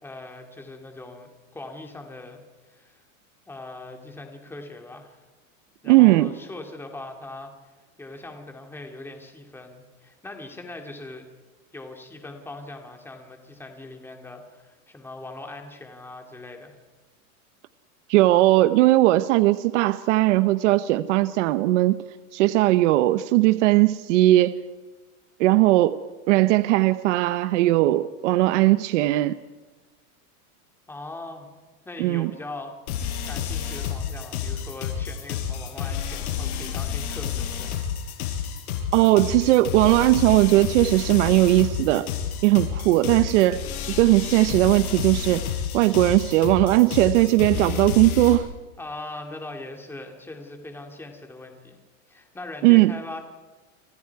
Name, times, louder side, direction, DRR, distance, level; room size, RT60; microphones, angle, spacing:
voice 1, 0.0-3.0 3.5-5.2 5.8-7.5 8.0-11.3 11.7-16.8 30.9-31.5 31.9-32.7 33.2-38.1 48.8-51.8 52.1-53.2, left 2 dB, 5° left, 3 dB, 2.5 m, -40 dB
voice 2, 5.8-6.3 18.1-22.0 22.3-24.6 25.4-26.0 26.3-29.4 32.0-32.3 38.9-42.1 42.4-43.6 44.0-45.4 45.7-48.5 52.6-52.9, right 17 dB, 55° right, 13 dB, 0.9 m, -18 dB
sound 1, 32.9-48.4, left 8 dB, 80° left, 6.9 m, -30 dB
30.0 x 25.5 x 4.8 m, 1.3 s
supercardioid pair, 165°, 43 cm